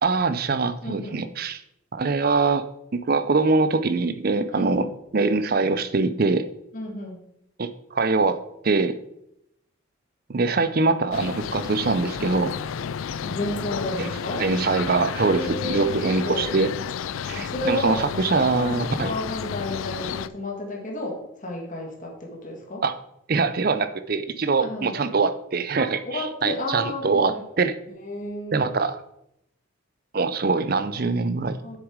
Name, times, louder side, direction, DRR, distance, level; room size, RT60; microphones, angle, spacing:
voice 1, 0.0-1.6 1.9-2.6 2.9-4.9 5.1-6.5 7.6-8.9 10.3-12.5 14.0-14.1 14.4-16.7 17.3-19.1 22.8-22.9 23.3-27.7 28.5-29.0 30.1-31.6, right 3 dB, 45° right, 11 dB, 0.5 m, -23 dB
voice 2, 0.8-1.3 4.5-4.9 6.7-7.2 13.2-14.5 15.2-15.9 16.2-16.5 17.4-18.1 18.6-22.8 24.6-24.9 25.8-27.4 28.0-28.7 30.9-31.0 31.6-31.8, left 1 dB, 35° left, -1 dB, 2.1 m, -32 dB
sound 1, 11.1-20.3, left 7 dB, 70° left, 0.3 m, -32 dB
7.5 x 6.3 x 4.8 m, 0.79 s
head